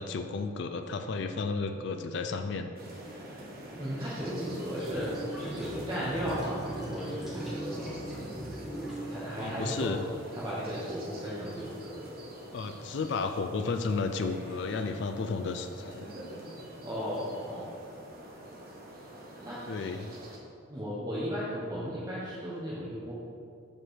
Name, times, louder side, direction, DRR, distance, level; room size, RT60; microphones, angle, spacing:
voice 1, 0.0-2.7 9.4-10.0 12.5-16.0 19.7-20.1, left 4 dB, 55° left, 7 dB, 0.4 m, -33 dB
sound 1, 2.7-20.4, right 1 dB, 45° right, 1.2 m, -46 dB
voice 2, 3.8-8.1 9.0-10.0 10.3-12.2 16.8-17.7 19.4-19.7 20.7-23.1, equal, 20° right, -8 dB, 1.1 m, -35 dB
sound 2, 4.9-10.4, right 1 dB, ahead, 1.4 m, -39 dB
5.7 x 5.2 x 6.3 m, 2.4 s
head